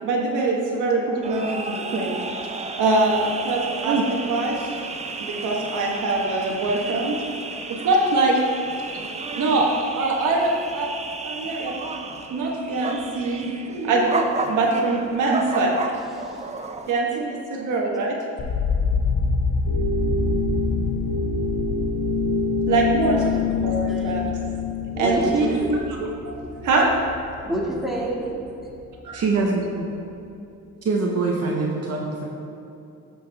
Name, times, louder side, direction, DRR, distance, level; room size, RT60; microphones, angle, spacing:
voice 1, 0.0-2.1 2.8-4.7 5.2-7.1 7.7-8.4 9.4-9.7 9.9-10.9 11.2-11.7 12.3-15.8 16.9-18.2 22.7-24.3 25.0-25.8 26.2-26.9 29.0-29.2, right 3 dB, 80° right, -1 dB, 1.4 m, -23 dB
sound 1, 1.2-16.9, right 3 dB, 20° right, 0.6 m, -33 dB
sound 2, 18.4-28.4 28.7-29.4, left 3 dB, 70° left, 1.2 m, -28 dB
sound 3, 19.7-25.7, left 5 dB, 50° left, 1.2 m, -26 dB
voice 2, 24.9-25.7 27.4-28.4, right 1 dB, ahead, -4 dB, 2.0 m, -28 dB
voice 3, 29.1-29.9 30.8-32.3, right 3 dB, 55° right, -1 dB, 1.1 m, -24 dB
12.5 x 6.1 x 3.5 m, 2.8 s
cardioid pair, 90°, 30 cm